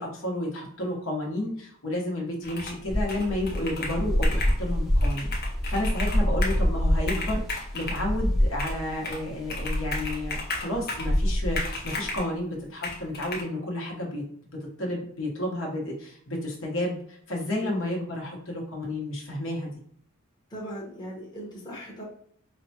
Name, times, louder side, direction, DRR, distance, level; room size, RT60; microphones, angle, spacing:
voice 1, 0.0-5.3 5.7-14.2 14.5-19.7, left 1 dB, 65° left, -1 dB, 1.1 m, -31 dB
Computer keyboard, 2.4-2.8 3.1-4.6 5.0-6.6 7.0-8.0 8.6-9.2 9.5-11.1 11.6-12.3 12.8-13.4, left 3 dB, 45° left, 0.8 m, -35 dB
sound 1, 2.9-12.2, equal, ahead, 0.5 m, -26 dB
voice 2, 20.5-22.0, equal, 20° left, -4 dB, 0.9 m, -38 dB
5.1 x 2.2 x 2.8 m, 0.63 s
head